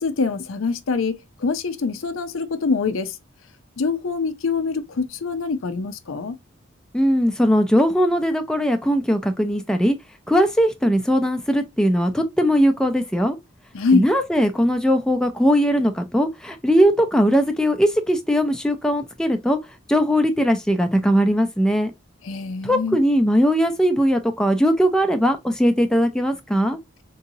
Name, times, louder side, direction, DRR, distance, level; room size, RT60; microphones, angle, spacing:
voice 1, 0.0-3.2 3.8-6.4 13.7-14.1 22.2-23.0, left 4 dB, 90° left, 0.5 m, -24 dB
voice 2, 6.9-10.0 10.3-13.4 13.9-19.6 19.9-21.9 22.6-26.8, equal, 5° left, 0.3 m, -19 dB
3.8 x 2.7 x 2.7 m
head